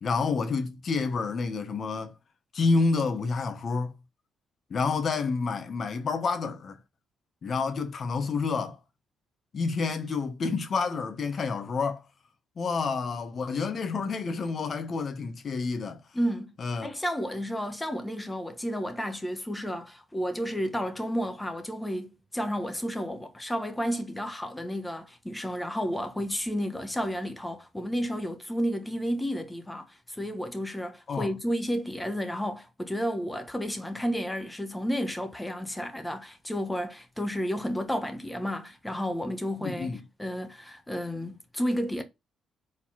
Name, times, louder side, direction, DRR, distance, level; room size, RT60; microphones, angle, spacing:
voice 1, 0.0-2.1 2.5-3.9 4.7-6.8 7.4-8.8 9.5-12.0 12.6-16.0 16.6-16.9 31.1-31.3 39.6-40.0, left 4 dB, 50° left, 1.3 m, -29 dB
voice 2, 16.1-42.0, equal, 10° left, 1.3 m, -32 dB
4.8 x 4.1 x 5.7 m
cardioid pair, 90°, 0 cm